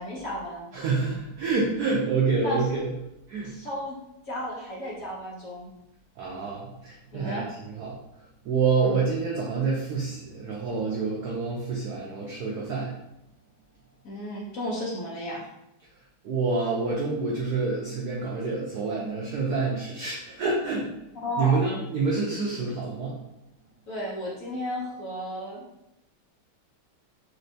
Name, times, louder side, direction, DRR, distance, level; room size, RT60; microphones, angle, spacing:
voice 1, 0.0-0.7 2.4-2.6 3.4-4.0 4.3-5.7 7.1-7.5 8.8-9.0 14.0-15.5 21.2-21.7 23.9-25.7, equal, 60° left, -5 dB, 0.9 m, -33 dB
voice 2, 0.7-2.9 3.3-3.5 6.2-8.0 8.4-12.9 16.2-20.9 21.4-23.2, right 4 dB, 75° right, -3 dB, 0.9 m, -27 dB
4.4 x 3.2 x 2.6 m, 0.87 s
omnidirectional pair, 2.3 m